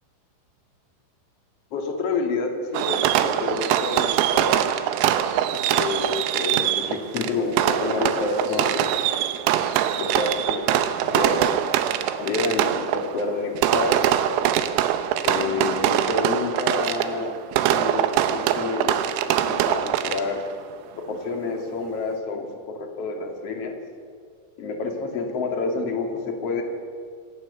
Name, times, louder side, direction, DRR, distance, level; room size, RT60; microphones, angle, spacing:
voice 1, 1.7-4.6 5.7-9.0 10.0-10.7 11.1-11.4 12.2-14.0 15.2-17.4 17.7-19.0 19.4-20.4 21.1-23.8 24.6-26.6, left 4 dB, 40° left, 3 dB, 2.5 m, -28 dB
Fireworks, 2.7-20.5, right 11 dB, 90° right, 3.7 m, -23 dB
26.5 x 19.0 x 7.1 m, 2.1 s
omnidirectional pair, 5.9 m